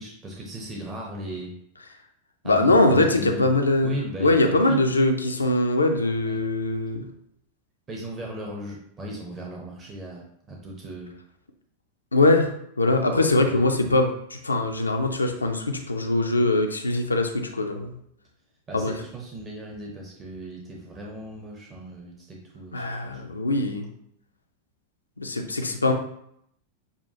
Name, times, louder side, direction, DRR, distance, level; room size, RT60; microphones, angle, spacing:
voice 1, 0.0-1.5 2.4-3.6 3.8-4.8 6.3-6.4 7.9-11.1 13.5-13.6 18.7-23.2, right 1 dB, 25° right, -2 dB, 0.9 m, -37 dB
voice 2, 2.4-7.0 12.1-12.5 12.8-17.9 18.7-18.9 22.7-23.9 25.2-25.9, left 2 dB, 80° left, 4 dB, 0.5 m, -22 dB
6.9 x 2.4 x 2.8 m, 0.72 s
figure-of-eight pair, 90°, 0 cm